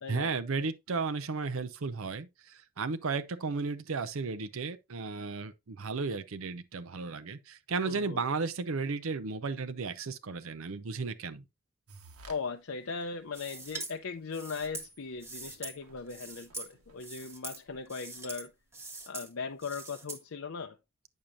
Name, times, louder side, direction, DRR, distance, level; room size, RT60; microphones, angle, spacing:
voice 1, 0.1-11.4, right 4 dB, 65° right, 0.6 m, -34 dB
voice 2, 7.9-8.2 12.3-18.5 19.1-20.8, left 5 dB, 65° left, 0.6 m, -39 dB
sound 1, 11.9-12.4 12.9-13.0 13.7-13.8 14.1-14.2 14.4-18.1, right 3 dB, 85° right, 1.3 m, -56 dB
sound 2, 13.3-13.9 14.3-15.8 16.1-16.7 17.0-17.6 17.9-18.4 18.7-19.3 19.6-20.2, right 3 dB, 10° right, 1.0 m, -43 dB
8.8 x 6.5 x 2.6 m
head